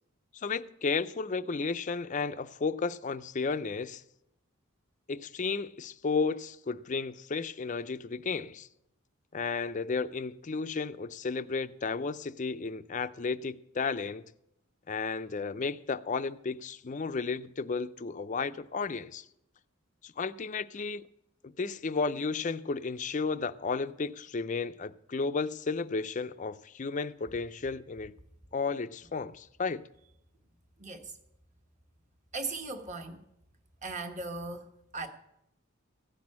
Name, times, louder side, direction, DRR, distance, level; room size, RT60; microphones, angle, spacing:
voice 1, 0.3-4.0 5.1-8.7 9.3-14.2 14.9-19.3 20.0-21.0 21.4-28.1 28.5-29.8, left 4 dB, 35° left, 0.4 m, -33 dB
voice 2, 30.8-31.2 32.3-33.2 33.8-35.1, right 3 dB, 35° right, 1.3 m, -38 dB
15.5 x 6.1 x 8.6 m
head